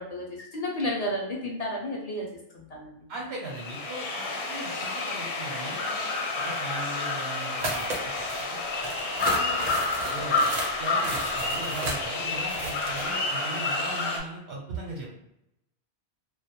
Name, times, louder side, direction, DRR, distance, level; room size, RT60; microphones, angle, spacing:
voice 1, 0.0-2.3 2.5-3.0, left 1 dB, 50° left, -2 dB, 0.5 m, -32 dB
voice 2, 3.1-6.1 6.4-9.8 10.1-10.5 10.8-15.1, right 2 dB, 80° right, -3 dB, 0.9 m, -39 dB
sound 1, 3.5-14.2, left 3 dB, 70° left, 0.8 m, -29 dB
sound 2, 7.6-8.4 8.8-13.1, right 2 dB, 55° right, 0.5 m, -34 dB
2.2 x 2.1 x 2.8 m, 0.83 s
omnidirectional pair, 1.1 m